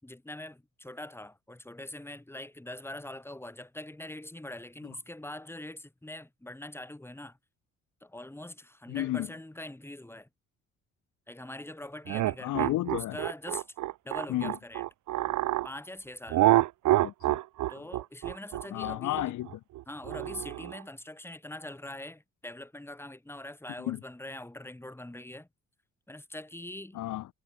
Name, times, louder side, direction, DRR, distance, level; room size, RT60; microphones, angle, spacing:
voice 1, 0.0-7.4 8.0-10.3 11.3-12.8 13.1-13.6 14.0-14.8 15.6-16.6 17.7-19.3 19.9-25.5 26.1-27.0, left 1 dB, 10° left, 3.8 m, -43 dB
voice 2, 8.9-9.3 12.4-13.2 14.3-14.5 17.0-17.4 17.8-17.9 18.7-19.6 23.8-24.0 26.9-27.3, left 15 dB, 80° left, 1.2 m, -32 dB
sound 1, 12.1-15.7 16.3-20.8, right 15 dB, 80° right, 1.2 m, -27 dB
cardioid pair, 90°, 30 cm